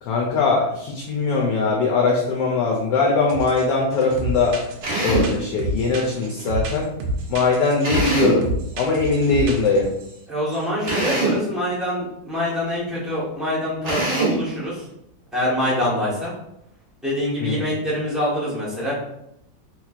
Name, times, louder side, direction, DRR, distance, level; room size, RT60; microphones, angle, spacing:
voice 1, 0.0-4.6 5.0-6.9 7.3-8.5 8.7-9.9 17.4-17.6, left 3 dB, 75° left, -1 dB, 1.1 m, -21 dB
sound 1, 3.3-3.6 3.9-10.2 10.5-10.6 10.9-11.1, right 1 dB, 90° right, 1.4 m, -29 dB
Drill, 4.8-5.4 7.8-8.5 10.8-11.5 13.8-14.5, right 2 dB, 55° right, 0.6 m, -23 dB
voice 2, 10.3-14.9 15.3-16.3 17.0-18.9, left 1 dB, ahead, -7 dB, 0.4 m, -25 dB
3.4 x 3.1 x 2.4 m, 0.80 s
omnidirectional pair, 2.2 m